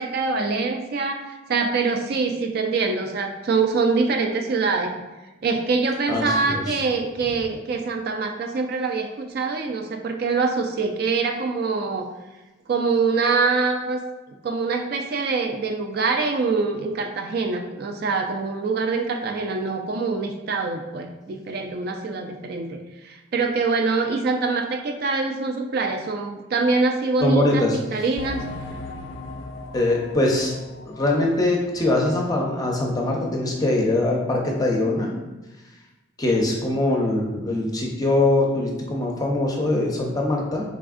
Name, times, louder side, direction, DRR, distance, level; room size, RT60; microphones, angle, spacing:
voice 1, 0.0-5.0 5.4-12.1 12.7-14.0 14.4-28.4, right 4 dB, 50° right, 4 dB, 0.3 m, -24 dB
voice 2, 6.1-6.8 27.2-27.8 29.7-30.5 30.9-35.1 36.2-40.6, left 2 dB, 20° left, -1 dB, 0.5 m, -22 dB
sound 1, 28.2-32.5 32.8-32.9 33.4-33.5, left 2 dB, 75° left, 0.4 m, -38 dB
4.1 x 3.4 x 2.4 m, 1.1 s
head